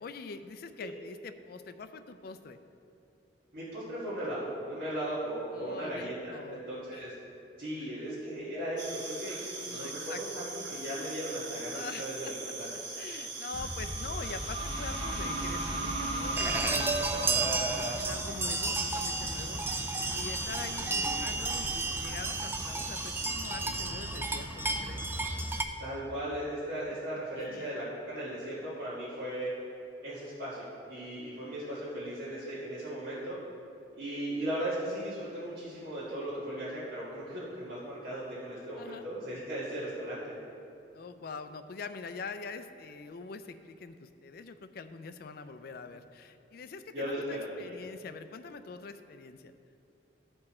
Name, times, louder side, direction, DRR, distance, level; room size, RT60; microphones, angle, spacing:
voice 1, 0.0-2.6 5.5-6.6 6.9-7.1 7.8-8.1 9.6-10.5 11.7-12.3 12.7-25.1 27.4-27.8 38.8-39.1 40.9-49.5, left 4 dB, 55° left, 9 dB, 0.4 m, -44 dB
voice 2, 3.5-7.2 7.6-12.7 20.9-21.1 25.8-29.5 30.0-33.4 33.9-40.3 46.9-47.8, right 1 dB, 55° right, -11 dB, 1.7 m, -37 dB
sound 1, 8.8-23.3, right 3 dB, 75° right, 1.1 m, -41 dB
sound 2, 13.5-19.2, right 1 dB, 30° right, 0.9 m, -37 dB
sound 3, 16.4-25.6, right 3 dB, 10° right, 0.3 m, -32 dB
13.0 x 4.5 x 4.3 m, 2.7 s
head